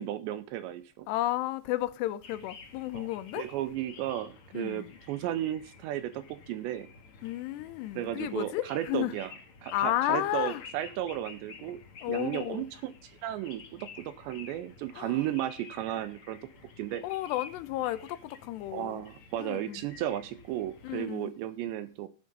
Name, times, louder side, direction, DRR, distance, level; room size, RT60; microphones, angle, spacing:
voice 1, 0.0-1.1 2.9-3.1 3.3-6.9 8.0-9.3 9.6-11.8 12.1-16.4 16.8-17.0 18.7-22.1, right 12 dB, 80° right, 2.8 m, -34 dB
voice 2, 1.1-3.4 4.5-4.9 7.2-9.2 9.7-10.6 12.0-12.6 15.0-15.2 17.0-19.0 19.4-19.8 20.8-21.3, left 15 dB, 80° left, 2.6 m, -32 dB
sound 1, 2.2-21.1, left 5 dB, 50° left, 1.6 m, -51 dB
11.0 x 8.9 x 5.3 m
omnidirectional pair, 5.4 m